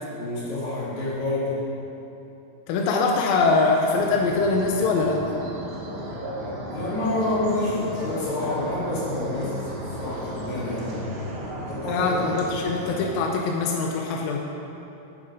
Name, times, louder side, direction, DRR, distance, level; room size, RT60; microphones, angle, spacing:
voice 1, 0.1-1.5 6.7-11.0 11.7-12.2, left 2 dB, 55° left, -9 dB, 3.9 m, -28 dB
voice 2, 2.7-5.2 11.9-14.4, left 3 dB, 90° left, 1 dB, 2.5 m, -23 dB
sound 1, 3.9-13.0, equal, 65° right, 1.0 m, -35 dB
9.6 x 7.6 x 5.2 m, 3.0 s
omnidirectional pair, 4.0 m